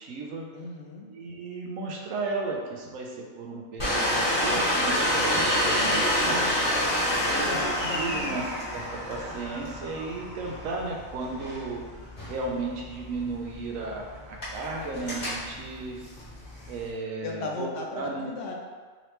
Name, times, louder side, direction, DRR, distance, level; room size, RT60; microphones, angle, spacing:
voice 1, 0.0-0.5 1.1-6.5 7.2-8.4 8.7-16.0 16.7-18.3, right 3 dB, 90° right, 0 dB, 1.1 m, -35 dB
voice 2, 0.5-1.1 7.3-8.4 17.2-18.5, left 3 dB, 70° left, 0 dB, 1.0 m, -36 dB
Domestic sounds home sounds, 3.8-16.9, equal, 50° left, 1.7 m, -29 dB
3.8 x 3.2 x 3.0 m, 1.5 s
omnidirectional pair, 1.3 m